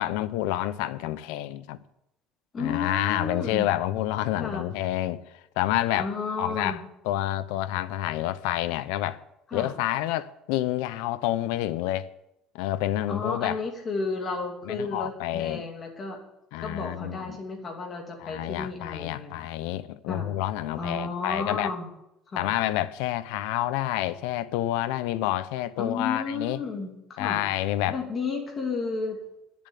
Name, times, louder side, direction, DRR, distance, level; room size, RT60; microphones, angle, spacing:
voice 1, 0.0-1.8 2.6-5.2 5.6-6.1 6.4-9.2 9.5-12.1 12.5-13.6 14.7-15.7 16.5-17.4 18.2-21.7 22.4-26.6 27.2-28.0, left 14 dB, 85° left, 0.7 m, -28 dB
voice 2, 2.5-3.7 4.4-4.6 5.9-6.8 9.5-9.7 13.1-16.2 16.6-19.3 20.1-20.3 20.8-21.9 22.3-22.5 25.8-27.4 27.9-29.2, left 4 dB, 25° left, 2.6 m, -32 dB
10.5 x 7.1 x 9.3 m
cardioid pair, 165°, 0 cm